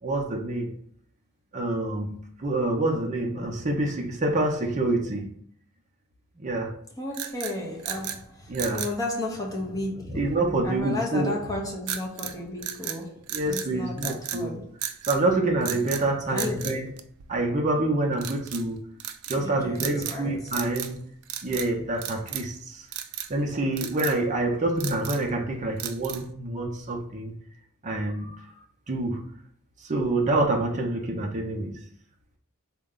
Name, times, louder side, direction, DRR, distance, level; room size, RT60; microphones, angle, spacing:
voice 1, 0.0-0.7 1.5-5.3 6.4-6.7 8.5-8.8 10.2-11.3 13.3-14.6 15.1-16.9 17.3-18.9 19.3-21.0 21.4-22.9 23.3-27.3 27.8-28.4 28.9-29.3 29.8-31.8, right 2 dB, 35° right, 0.5 m, -27 dB
voice 2, 7.0-10.4 10.6-14.7 16.3-16.7 19.3-20.5, left 2 dB, 15° left, 0.7 m, -33 dB
sound 1, 7.1-8.2 8.5-9.0 11.9-12.4 12.6-13.7 14.0-14.4 14.8-15.2 15.6-16.1 16.4-17.6 18.2-18.6 19.0-19.4 19.8-20.2 20.5-21.0 21.2-21.7 22.0-22.6 22.9-23.3 23.8-24.2 24.6-25.3 25.8-26.3, right 10 dB, 85° right, 0.4 m, -35 dB
3.8 x 2.2 x 3.7 m
head